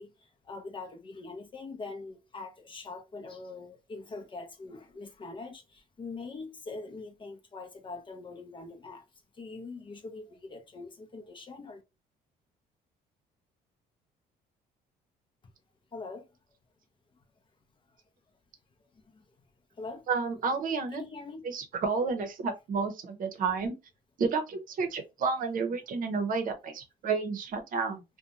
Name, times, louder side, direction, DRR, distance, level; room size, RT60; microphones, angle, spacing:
voice 1, 0.0-9.0 9.3-11.8 15.4-15.5 15.9-16.3 17.9-18.0 18.9-19.2 19.7-20.1 20.9-21.5, left 3 dB, 30° left, 0.6 m, -43 dB
voice 2, 20.1-21.0 21.4-23.8 24.2-28.0, right 4 dB, 55° right, 0.7 m, -31 dB
2.5 x 2.2 x 2.8 m
cardioid pair, 110°, 17 cm